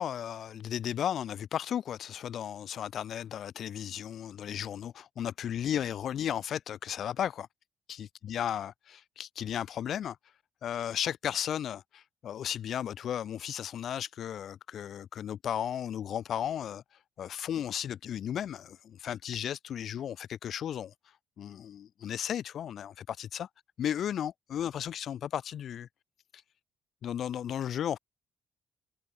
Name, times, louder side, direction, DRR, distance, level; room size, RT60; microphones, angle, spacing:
voice 1, 0.0-7.5 7.9-10.2 10.6-16.8 17.2-20.9 21.4-23.5 23.8-25.9 27.0-28.0, left 9 dB, 65° left, 2.9 m, -35 dB
cardioid pair, 90°, 0 cm